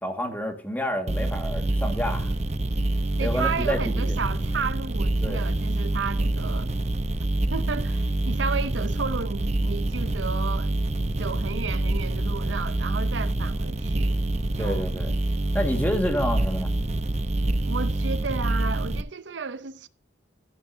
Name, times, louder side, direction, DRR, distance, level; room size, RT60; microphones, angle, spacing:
voice 1, 0.0-2.3 3.2-4.1 5.2-5.4 14.6-15.1 15.5-16.7, equal, 10° left, 1.8 m, -29 dB
sound 1, 1.1-19.0, right 1 dB, 35° right, 0.8 m, -26 dB
voice 2, 3.2-6.7 7.5-10.8 11.2-14.2 14.5-14.9 17.6-19.9, right 5 dB, 75° right, 0.7 m, -33 dB
14.5 x 9.7 x 2.7 m
head